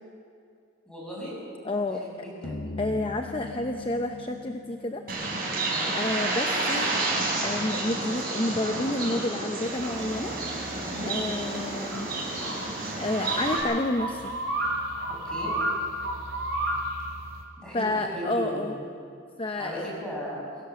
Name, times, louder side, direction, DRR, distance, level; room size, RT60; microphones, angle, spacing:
voice 1, 0.9-1.4 2.0-2.7 5.7-6.0 10.9-11.1 15.1-15.5 17.6-18.7 19.6-20.4, equal, 5° left, -5 dB, 6.7 m, -37 dB
voice 2, 1.6-2.0 2.8-5.0 5.9-6.9 7.4-10.3 11.1-12.1 13.0-14.3 17.7-18.7 19.4-19.9, left 2 dB, 25° left, 5 dB, 0.7 m, -29 dB
sound 1, 2.4-6.8, left 3 dB, 60° left, 1.4 m, -41 dB
Bird, 5.1-13.6, right 2 dB, 50° right, 5.9 m, -30 dB
sound 2, 9.8-17.4, right 1 dB, 80° right, 3.5 m, -32 dB
23.0 x 16.5 x 7.1 m, 2.4 s
head